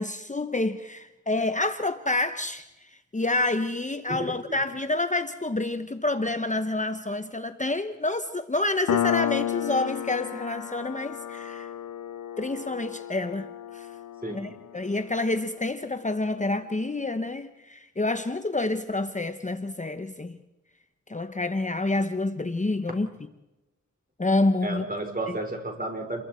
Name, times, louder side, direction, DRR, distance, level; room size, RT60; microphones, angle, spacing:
voice 1, 0.0-11.7 12.4-13.9 14.3-20.4 21.1-23.1 24.2-24.8 25.3-25.4, left 2 dB, 25° left, 1.0 m, -28 dB
Piano, 8.9-16.1, left 10 dB, 75° left, 0.6 m, -32 dB
voice 2, 14.2-14.5 24.6-26.2, right 2 dB, 30° right, 5.1 m, -32 dB
29.0 x 22.5 x 4.4 m
cardioid pair, 55°, 31 cm